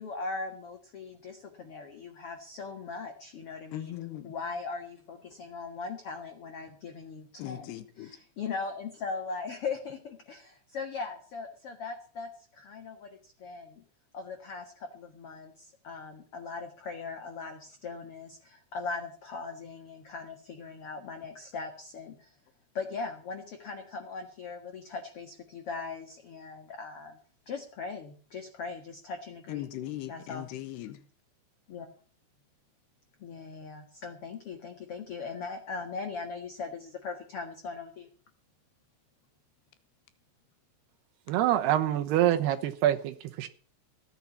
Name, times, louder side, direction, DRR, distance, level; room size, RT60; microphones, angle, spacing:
voice 1, 0.0-3.9 4.2-7.7 8.0-13.8 14.1-22.3 22.7-27.2 27.5-29.7 30.1-30.5 31.7-31.9 33.2-38.1, left 4 dB, 50° left, 2.0 m, -39 dB
voice 2, 3.7-4.3 7.4-8.1 29.5-31.0, left 14 dB, 85° left, 3.5 m, -39 dB
voice 3, 41.3-43.5, right 12 dB, 80° right, 3.0 m, -26 dB
15.5 x 9.6 x 7.2 m
omnidirectional pair, 4.6 m